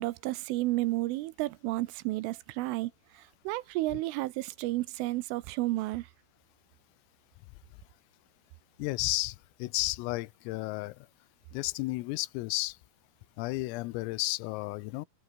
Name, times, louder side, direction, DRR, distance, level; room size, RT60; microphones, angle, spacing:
voice 1, 0.0-6.1, right 18 dB, 80° right, 3.3 m, -32 dB
voice 2, 8.8-11.0 11.5-12.8 13.4-15.1, left 21 dB, 90° left, 3.5 m, -33 dB
omnidirectional pair, 5.9 m